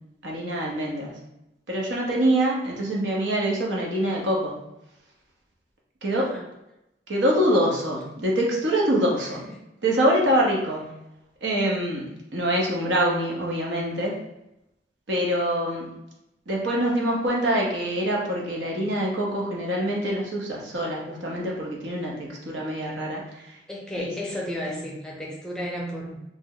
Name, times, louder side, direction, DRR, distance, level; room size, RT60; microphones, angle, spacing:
voice 1, 0.2-1.2 1.7-4.6 6.0-6.4 7.1-9.4 9.8-11.0 11.4-14.2 15.1-15.8 16.5-23.2 24.0-24.1, right 1 dB, 85° right, -2 dB, 0.9 m, -25 dB
voice 2, 2.7-3.1 6.2-6.5 9.3-9.6 15.5-15.6 23.7-26.2, equal, 5° left, -3 dB, 0.5 m, -34 dB
3.2 x 2.1 x 3.8 m, 0.89 s
head